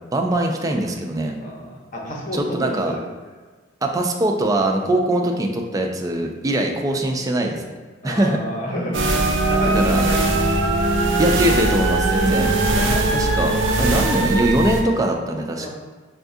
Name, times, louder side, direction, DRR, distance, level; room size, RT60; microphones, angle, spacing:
voice 1, 0.1-1.4 2.3-3.0 3.8-7.8 8.0-8.4 9.7-10.1 11.2-12.5 13.1-15.7, right 1 dB, 20° right, 2 dB, 0.3 m, -22 dB
voice 2, 1.4-3.0 8.0-9.2 9.5-10.5 12.2-13.5 15.6-15.7, equal, 45° left, -2 dB, 0.8 m, -30 dB
sound 1, 8.9-14.8, right 2 dB, 75° right, 0.5 m, -20 dB
5.6 x 2.3 x 2.6 m, 1.4 s
head